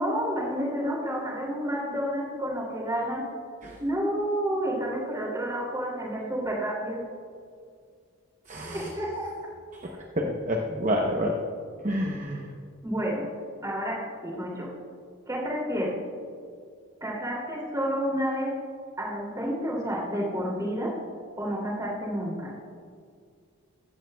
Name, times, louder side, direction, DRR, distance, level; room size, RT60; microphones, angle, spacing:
voice 1, 0.0-3.3 3.8-7.0 9.0-9.3 12.8-13.3 13.6-14.7 15.3-16.0 17.0-18.5 19.0-20.9 21.4-22.5, equal, 15° right, -3 dB, 2.6 m, -30 dB
voice 2, 8.5-8.9 9.8-9.9 10.2-11.3 11.8-12.4, equal, 35° right, 1 dB, 0.7 m, -28 dB
15.0 x 13.0 x 2.3 m, 2.2 s
head